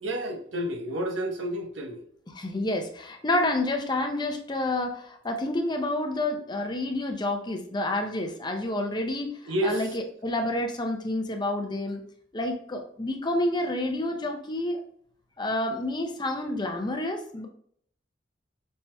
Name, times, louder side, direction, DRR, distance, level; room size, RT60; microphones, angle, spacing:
voice 1, 0.0-2.0 9.5-9.8, right 1 dB, 85° right, 0.9 m, -30 dB
voice 2, 2.3-12.0 12.3-14.8 15.4-17.5, left 1 dB, 25° left, 0.6 m, -29 dB
5.4 x 3.0 x 2.2 m
head